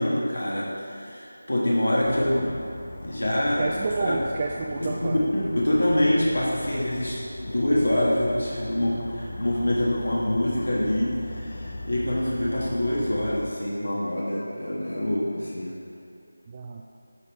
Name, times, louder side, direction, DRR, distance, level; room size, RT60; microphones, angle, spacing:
voice 1, 0.0-2.5 3.0-3.7 4.1-4.2 4.8-7.2 7.4-15.8, left 1 dB, 75° left, -5 dB, 1.4 m, -25 dB
Dog, 2.0-13.5, left 2 dB, 35° left, 0.6 m, -39 dB
voice 2, 3.6-5.2 16.5-16.8, right 4 dB, 25° right, 0 dB, 0.3 m, -30 dB
9.8 x 5.4 x 3.1 m, 2.5 s
figure-of-eight pair, 165°, 0 cm